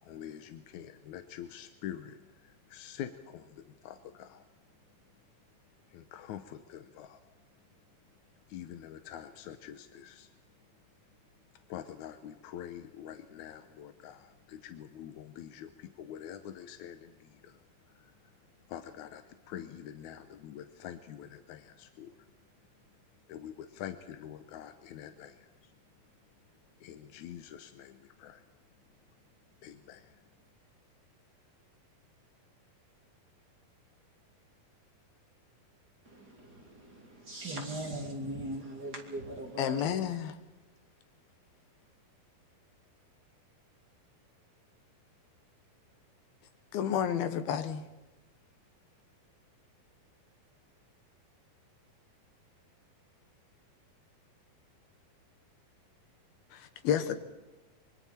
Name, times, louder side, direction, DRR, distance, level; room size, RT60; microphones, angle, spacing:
voice 1, 0.0-4.5 5.9-7.2 8.5-10.3 11.7-22.3 23.3-25.7 26.8-28.4 29.6-30.3, left 10 dB, 70° left, 1.9 m, -46 dB
voice 2, 36.0-39.8, right 1 dB, 30° right, 3.2 m, -40 dB
voice 3, 39.6-40.4 46.7-47.9 56.5-57.2, left 9 dB, 90° left, 3.2 m, -30 dB
26.0 x 24.0 x 4.4 m
omnidirectional pair, 4.2 m